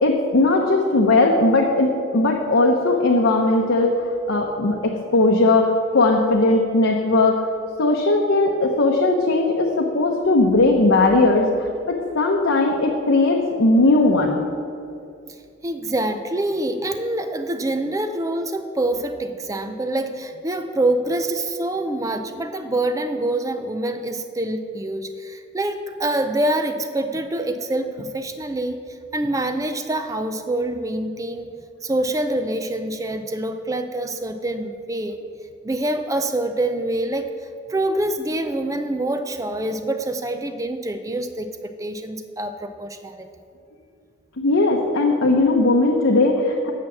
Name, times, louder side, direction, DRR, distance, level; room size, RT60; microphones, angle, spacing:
voice 1, 0.0-3.9 4.3-7.4 7.8-14.4 44.4-46.7, left 2 dB, 80° left, 1 dB, 0.8 m, -18 dB
voice 2, 15.6-28.8 29.1-31.5 31.8-35.2 35.6-37.3 37.7-43.3, right 1 dB, 15° right, 8 dB, 0.4 m, -25 dB
8.7 x 6.0 x 7.2 m, 2.5 s
head